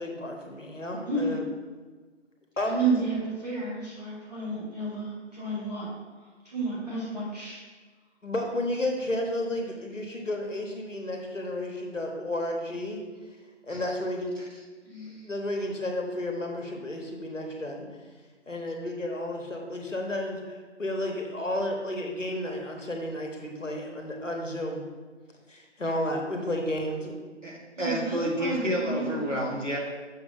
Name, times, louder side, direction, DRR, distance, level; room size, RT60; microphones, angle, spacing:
voice 1, 0.0-1.4 2.6-2.8 8.2-13.0 13.7-14.3 15.1-17.9 18.5-24.8 25.5-27.1, left 1 dB, 75° left, 2 dB, 1.4 m, -32 dB
voice 2, 2.6-5.9 6.2-7.6 14.8-15.1 27.8-29.4, right 3 dB, 35° right, -7 dB, 2.0 m, -31 dB
voice 3, 27.4-29.8, right 1 dB, 75° right, -3 dB, 2.1 m, -30 dB
6.7 x 3.5 x 5.6 m, 1.4 s
figure-of-eight pair, 170°, 37 cm